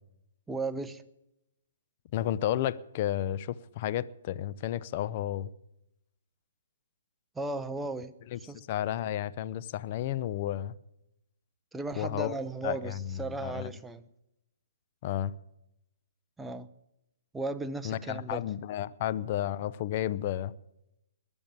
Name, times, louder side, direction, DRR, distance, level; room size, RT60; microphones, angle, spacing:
voice 1, 0.5-1.0 7.3-8.1 8.5-8.6 11.7-14.1 16.4-16.7 17.3-18.4, right 2 dB, 5° right, 8 dB, 0.8 m, -35 dB
voice 2, 2.1-5.5 8.3-10.7 12.0-12.3 12.6-13.7 15.0-15.3 17.8-20.5, left 12 dB, 45° left, 16 dB, 0.7 m, -32 dB
21.0 x 7.1 x 8.8 m, 0.88 s
hypercardioid pair, 140°, 0 cm